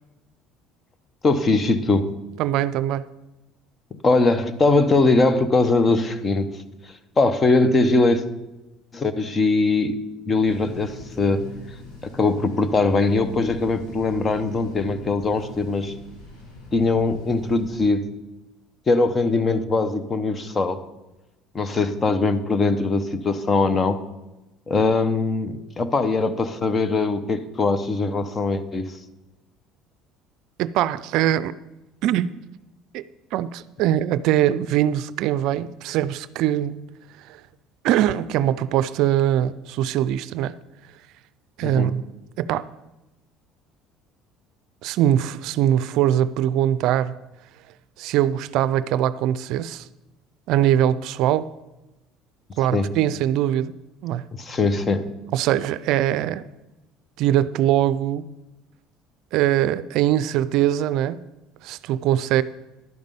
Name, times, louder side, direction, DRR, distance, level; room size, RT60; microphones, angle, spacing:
voice 1, 1.2-2.1 3.9-6.5 7.2-8.2 8.9-10.0 10.3-11.5 12.0-16.0 16.7-18.1 18.9-20.8 21.5-24.0 24.7-28.9 41.6-41.9 52.7-52.9 54.3-55.1, left 3 dB, 30° left, 0.9 m, -21 dB
voice 2, 2.4-3.1 30.6-31.5 32.0-32.3 32.9-33.0 33.3-36.8 37.2-37.4 37.8-40.6 41.6-42.0 42.4-42.7 44.8-47.1 48.0-49.9 50.5-51.5 52.6-53.7 54.0-54.3 55.3-56.5 57.2-58.3 59.3-61.2 61.6-62.4, right 12 dB, 70° right, 0.4 m, -22 dB
sound 1, 10.4-17.9, left 2 dB, 80° left, 3.9 m, -42 dB
11.0 x 5.2 x 6.9 m
supercardioid pair, 90°, 0 cm